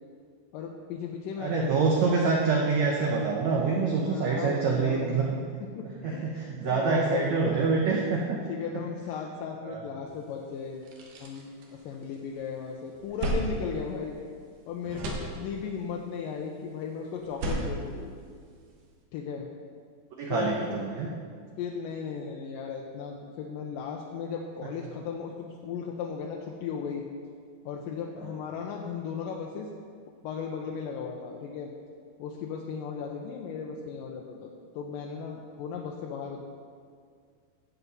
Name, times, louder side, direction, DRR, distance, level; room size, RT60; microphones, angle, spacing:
voice 1, 0.5-2.0 4.0-5.2 5.8-7.3 8.5-10.9 11.2-14.2 14.7-18.1 19.1-19.5 20.3-20.6 21.6-27.0 27.6-29.7 30.2-31.7 32.2-36.4, left 6 dB, 75° left, 0 dB, 2.1 m, -36 dB
voice 2, 1.4-5.3 5.8-8.4 9.6-9.8 20.2-21.1, right 4 dB, 80° right, -1 dB, 1.6 m, -26 dB
sound 1, 10.2-10.3 10.7-12.3 12.7-14.6 14.8-15.9 17.2-18.8, right 2 dB, 65° right, 2.5 m, -35 dB
15.0 x 7.1 x 4.1 m, 2.1 s
omnidirectional pair, 4.4 m